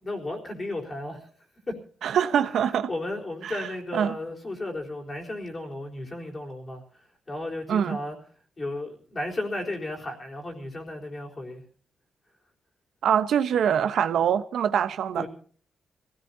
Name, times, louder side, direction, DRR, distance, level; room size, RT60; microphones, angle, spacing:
voice 1, 0.0-1.3 1.7-1.8 2.6-8.2 8.6-11.6 15.2-15.3, left 1 dB, 25° left, 4.0 m, -34 dB
voice 2, 2.0-2.9 3.4-3.7 3.9-4.2 7.7-8.0 13.0-15.2, right 8 dB, 80° right, 1.0 m, -24 dB
25.5 x 16.5 x 2.8 m
wide cardioid pair, 140°, 0 cm